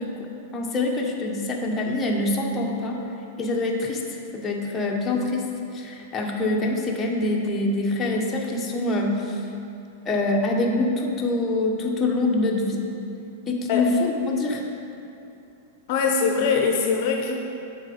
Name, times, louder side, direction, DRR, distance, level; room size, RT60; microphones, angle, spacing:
voice 1, 0.0-3.0 3.4-4.0 4.3-5.4 5.7-9.4 10.0-12.8 13.5-14.6, left 2 dB, 20° left, -1 dB, 0.9 m, -25 dB
voice 2, 15.9-17.3, left 5 dB, 55° left, 2 dB, 0.6 m, -22 dB
7.2 x 4.2 x 5.1 m, 2.7 s
hypercardioid pair, 125°, 0 cm